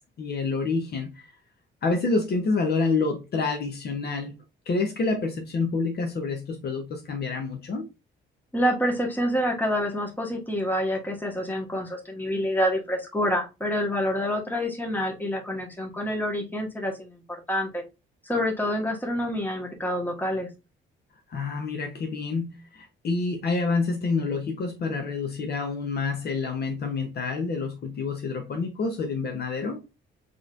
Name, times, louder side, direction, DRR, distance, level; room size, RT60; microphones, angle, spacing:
voice 1, 0.2-1.3 1.8-4.4 4.7-7.9 21.3-29.8, left 4 dB, 55° left, 0.8 m, -28 dB
voice 2, 8.5-17.2 17.5-17.8 18.2-20.5, equal, 10° left, 1.4 m, -27 dB
4.0 x 3.1 x 2.5 m
cardioid pair, 90°, 20 cm